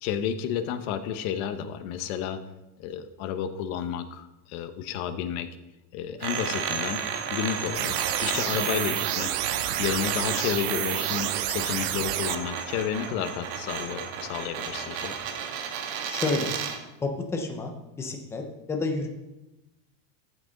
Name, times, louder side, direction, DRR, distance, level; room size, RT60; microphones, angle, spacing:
voice 1, 0.0-2.4 2.8-5.5 5.9-7.0 7.3-9.3 9.8-15.1, left 8 dB, 65° left, 9 dB, 1.1 m, -31 dB
sound 1, 6.2-16.8, right 7 dB, 60° right, 1.3 m, -33 dB
sound 2, 6.4-15.4, right 3 dB, 30° right, 1.3 m, -48 dB
sound 3, 7.7-12.4, right 15 dB, 80° right, 0.7 m, -29 dB
voice 2, 16.1-16.5 17.0-18.4 18.7-19.1, left 3 dB, 5° left, 3 dB, 0.3 m, -29 dB
14.0 x 6.3 x 3.9 m, 0.98 s
cardioid pair, 170°, 47 cm